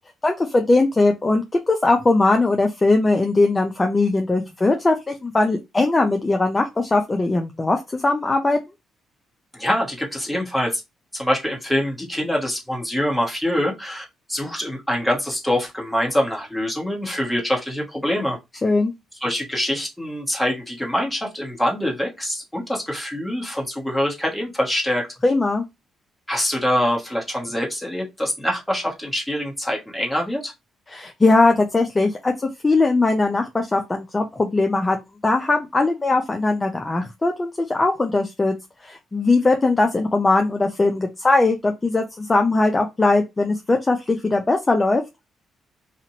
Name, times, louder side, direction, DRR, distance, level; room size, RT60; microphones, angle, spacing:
voice 1, 0.2-8.6 18.6-18.9 25.2-25.6 30.9-35.0 35.2-38.5 38.8-45.0, left 2 dB, 20° left, 3 dB, 0.5 m, -20 dB
voice 2, 9.5-10.8 11.1-18.4 19.2-25.0 26.3-30.5, equal, 5° left, -1 dB, 1.2 m, -24 dB
2.8 x 2.5 x 2.8 m, 0.22 s
cardioid pair, 90°, 0 cm